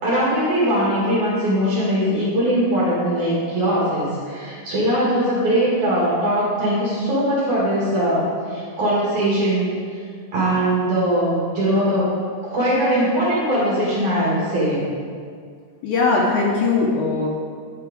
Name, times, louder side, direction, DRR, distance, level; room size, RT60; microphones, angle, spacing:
voice 1, 0.0-9.7 10.3-12.1 12.5-14.8, right 1 dB, 55° right, -8 dB, 2.5 m, -20 dB
voice 2, 15.8-17.3, left 3 dB, 75° left, -2 dB, 2.8 m, -19 dB
11.0 x 5.7 x 5.0 m, 2.1 s
omnidirectional pair, 5.8 m